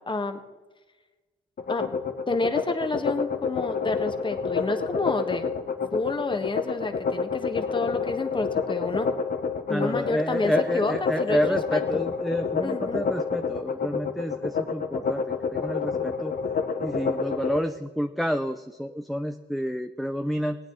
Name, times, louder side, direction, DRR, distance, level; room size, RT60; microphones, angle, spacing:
voice 1, 0.1-0.4 1.7-1.9 2.3-5.5 5.9-9.1 9.7-12.0 12.6-13.0, left 3 dB, 25° left, 7 dB, 1.5 m, -29 dB
sound 1, 1.6-17.6, left 5 dB, 45° left, 1.3 m, -28 dB
voice 2, 9.7-15.2 15.5-16.3 16.8-20.6, equal, ahead, 7 dB, 0.5 m, -29 dB
18.5 x 9.2 x 4.0 m, 1.2 s
cardioid pair, 90°, 20 cm